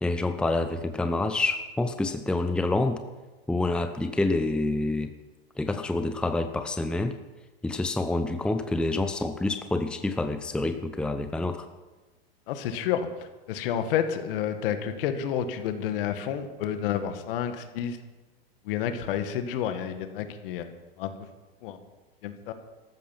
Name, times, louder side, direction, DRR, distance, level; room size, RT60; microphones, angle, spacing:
voice 1, 0.0-3.0 3.5-5.1 5.6-7.1 7.6-11.6, left 2 dB, 5° left, 8 dB, 0.8 m, -27 dB
voice 2, 12.5-13.1 13.5-18.0 18.7-20.7 21.0-21.1 21.6-21.8 22.2-22.5, left 9 dB, 60° left, 8 dB, 1.8 m, -30 dB
14.5 x 12.5 x 5.9 m, 1.2 s
hypercardioid pair, 110°, 30 cm